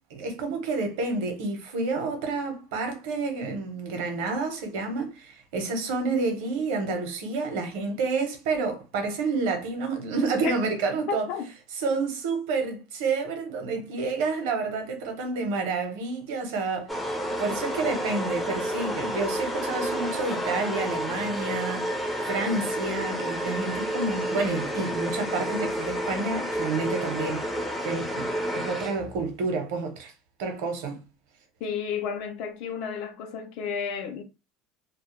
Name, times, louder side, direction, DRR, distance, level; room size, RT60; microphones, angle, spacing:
voice 1, 0.1-11.3 11.8-16.9 17.4-21.9 22.2-27.5 27.8-30.1 30.4-31.0, right 3 dB, 75° right, 0.8 m, -29 dB
voice 2, 11.1-11.5 31.6-34.2, left 6 dB, 60° left, 0.6 m, -32 dB
sound 1, 16.9-29.3, equal, 5° left, 0.4 m, -30 dB
2.3 x 2.0 x 3.0 m
supercardioid pair, 145°, 0 cm